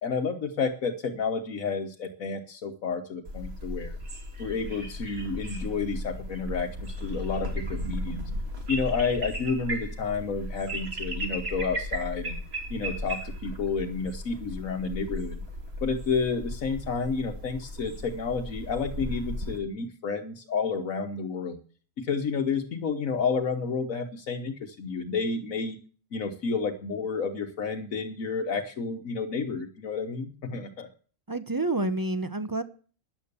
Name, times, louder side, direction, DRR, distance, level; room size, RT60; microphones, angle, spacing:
voice 1, 0.0-4.0 4.4-8.2 8.7-12.4 12.7-15.4 15.8-21.6 22.0-25.8 26.1-30.9, left 5 dB, 80° left, 4 dB, 1.6 m, -30 dB
sound 1, 3.3-19.6, equal, 50° right, 2.9 m, -36 dB
voice 2, 31.3-32.6, right 2 dB, 20° right, 11 dB, 0.8 m, -28 dB
13.5 x 10.5 x 6.8 m, 0.41 s
omnidirectional pair, 1.4 m